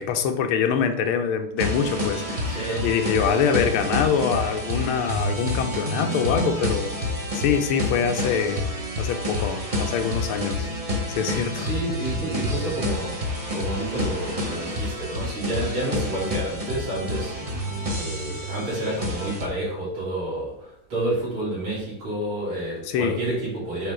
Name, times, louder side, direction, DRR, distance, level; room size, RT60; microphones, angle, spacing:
voice 1, 0.0-6.9 7.3-8.7 9.0-10.7 11.1-11.7 22.9-23.2, left 7 dB, 75° left, 7 dB, 1.5 m, -24 dB
sound 1, 1.6-19.5, left 1 dB, 35° right, 0.5 m, -28 dB
voice 2, 2.4-2.9 11.6-17.5 17.9-23.9, right 1 dB, 65° right, -7 dB, 3.9 m, -29 dB
8.9 x 3.8 x 3.8 m, 0.80 s
omnidirectional pair, 2.4 m